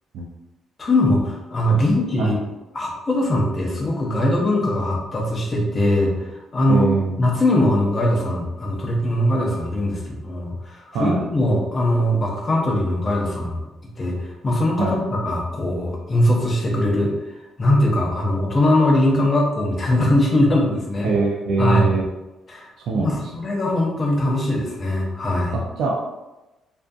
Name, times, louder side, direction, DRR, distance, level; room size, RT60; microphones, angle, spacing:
voice 1, 0.8-2.4 2.7-6.9 7.2-13.6 14.0-17.1 17.6-21.1 21.6-21.9 22.5-25.5, left 1 dB, 35° left, -1 dB, 0.6 m, -21 dB
voice 2, 6.7-7.2 10.9-11.2 14.8-15.0 21.0-22.1 22.8-23.3 25.5-25.9, right 4 dB, 80° right, -2 dB, 0.3 m, -23 dB
2.5 x 2.4 x 2.2 m, 1.0 s
cardioid pair, 90°, 0 cm